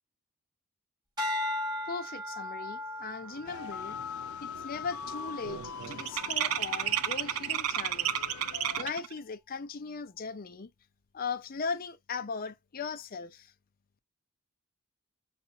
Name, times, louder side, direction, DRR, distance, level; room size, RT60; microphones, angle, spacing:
sound 1, 1.2-5.6 6.2-6.6, left 1 dB, 20° right, 2.6 m, -38 dB
voice 1, 1.9-4.0 4.4-8.1 8.8-10.7 11.1-13.5, left 5 dB, 40° left, 0.5 m, -38 dB
sound 2, 3.4-8.9, left 6 dB, 85° left, 0.6 m, -42 dB
sound 3, 3.4-3.5 3.9-4.2 4.5-9.1, right 11 dB, 75° right, 0.4 m, -32 dB
5.7 x 2.6 x 2.6 m
head